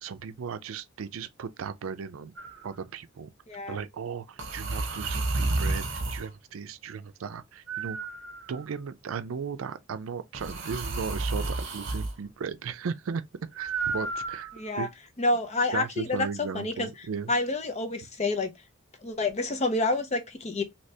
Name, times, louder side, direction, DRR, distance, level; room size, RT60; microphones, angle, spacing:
voice 1, 0.0-2.3 2.6-3.3 3.7-8.0 8.5-13.2 13.6-14.5 14.8-14.9 15.7-17.3, right 6 dB, 85° right, 0.4 m, -36 dB
sound 1, 2.4-2.7 4.4-6.3 7.7-8.8 10.3-12.1 13.6-14.8, right 3 dB, 60° right, 0.9 m, -31 dB
voice 2, 3.5-3.8 14.5-14.9 15.2-16.9 17.3-18.5 19.0-20.6, left 2 dB, 35° left, 0.6 m, -28 dB
3.3 x 2.8 x 2.7 m
head